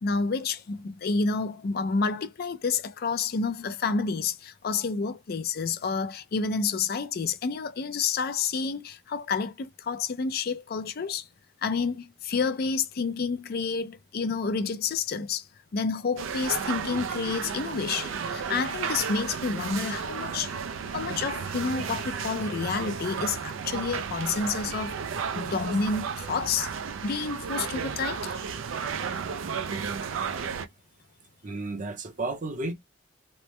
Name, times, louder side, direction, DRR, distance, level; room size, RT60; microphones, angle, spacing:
voice 1, 0.0-11.3 11.6-15.4 15.7-20.5 20.9-25.0 25.4-26.7 27.0-28.3, left 5 dB, 50° left, 0.4 m, -29 dB
sound 1, 16.2-30.7, right 6 dB, 80° right, 0.4 m, -33 dB
voice 2, 31.4-32.7, right 2 dB, 40° right, 0.6 m, -32 dB
3.0 x 2.0 x 3.1 m
head